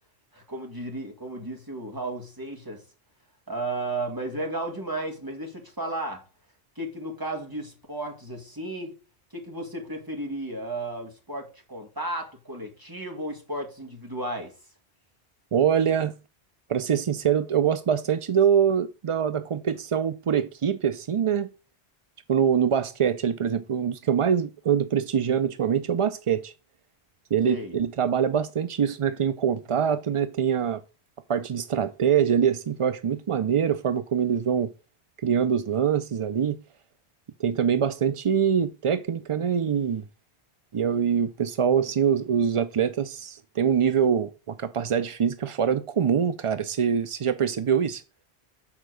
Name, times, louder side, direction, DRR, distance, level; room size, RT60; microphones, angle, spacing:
voice 1, 0.3-2.9 3.5-6.3 6.8-9.0 9.3-14.6 27.4-27.8, right 2 dB, 20° right, 2.1 m, -34 dB
voice 2, 15.5-16.2 16.7-21.5 22.3-26.5 27.3-30.8 31.3-34.7 35.2-36.6 37.4-40.0 40.7-48.0, right 8 dB, 55° right, 0.3 m, -24 dB
7.3 x 4.5 x 6.2 m
omnidirectional pair, 1.1 m